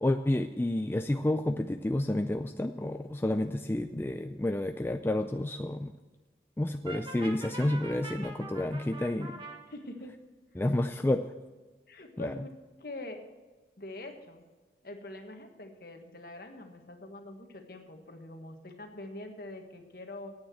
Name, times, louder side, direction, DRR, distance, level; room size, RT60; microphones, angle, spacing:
voice 1, 0.0-5.9 6.6-9.4 10.6-11.3 12.2-12.3, left 1 dB, 10° left, 7 dB, 0.3 m, -30 dB
Brass instrument, 6.9-9.6, right 2 dB, 30° right, 1.4 m, -43 dB
voice 2, 9.7-10.1 11.9-12.5 12.8-13.2 13.8-14.4 14.8-20.3, left 2 dB, 55° left, 5 dB, 1.5 m, -44 dB
9.8 x 8.8 x 7.5 m, 1.3 s
head